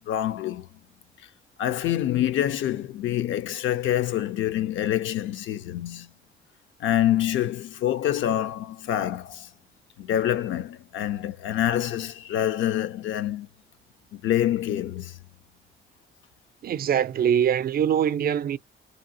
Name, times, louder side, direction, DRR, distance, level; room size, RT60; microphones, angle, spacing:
voice 1, 0.1-0.7 1.6-6.1 6.8-9.5 10.0-13.5 14.1-15.1, left 12 dB, 75° left, 0.6 m, -26 dB
voice 2, 16.6-18.6, right 9 dB, 50° right, 0.4 m, -23 dB
2.8 x 2.7 x 2.6 m
cardioid pair, 90°, 20 cm